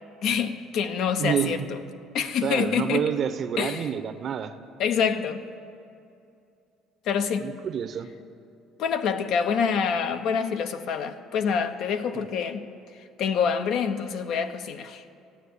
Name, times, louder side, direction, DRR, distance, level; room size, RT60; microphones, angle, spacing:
voice 1, 0.2-1.8 2.1-3.1 3.6-3.9 4.8-5.4 7.1-7.6 8.8-12.7 13.2-15.0, left 6 dB, 65° left, 8 dB, 0.8 m, -26 dB
voice 2, 1.2-1.5 2.4-4.5 7.4-8.1 12.1-12.3, right 8 dB, 50° right, 11 dB, 0.8 m, -28 dB
15.0 x 9.1 x 8.6 m, 2.6 s
cardioid pair, 115°, 0 cm